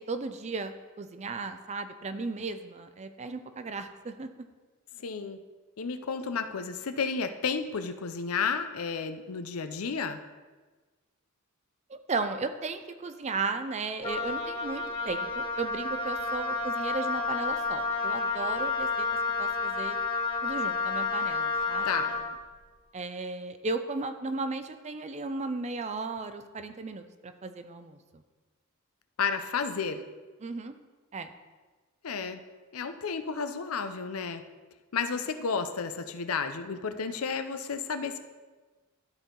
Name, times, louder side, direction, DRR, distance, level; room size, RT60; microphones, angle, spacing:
voice 1, 0.1-4.3 11.9-19.1 19.4-20.0 20.4-21.9 22.9-28.0 30.4-30.7 31.1-31.3, right 3 dB, 30° right, 9 dB, 0.5 m, -35 dB
voice 2, 5.0-5.4 5.8-10.2 21.8-22.1 29.2-30.0 32.0-32.4 32.7-34.4 34.9-38.2, left 5 dB, 85° left, 9 dB, 0.6 m, -32 dB
Wind instrument woodwind instrument, 14.0-22.3, left 4 dB, 25° left, 1.2 m, -30 dB
12.5 x 4.5 x 3.8 m, 1.3 s
head